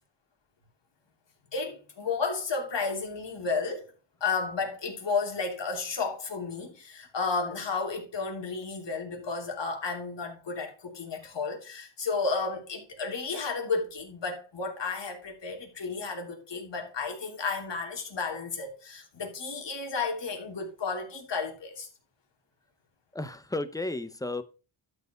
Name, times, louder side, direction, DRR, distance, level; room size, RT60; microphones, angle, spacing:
voice 1, 1.5-3.8 4.2-21.9, left 4 dB, 60° left, 3.0 m, -32 dB
voice 2, 23.1-24.4, left 2 dB, 5° left, 0.9 m, -33 dB
12.0 x 4.8 x 5.2 m
cardioid pair, 90°, 47 cm